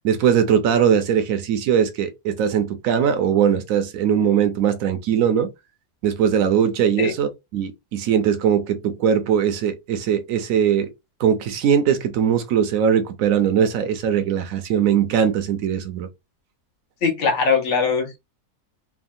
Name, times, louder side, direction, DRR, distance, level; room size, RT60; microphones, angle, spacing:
voice 1, 0.0-5.5 6.0-10.9 11.2-16.1, right 8 dB, 70° right, 0.9 m, -20 dB
voice 2, 17.0-18.2, left 5 dB, 60° left, 0.9 m, -21 dB
3.3 x 2.1 x 2.5 m
omnidirectional pair, 1.7 m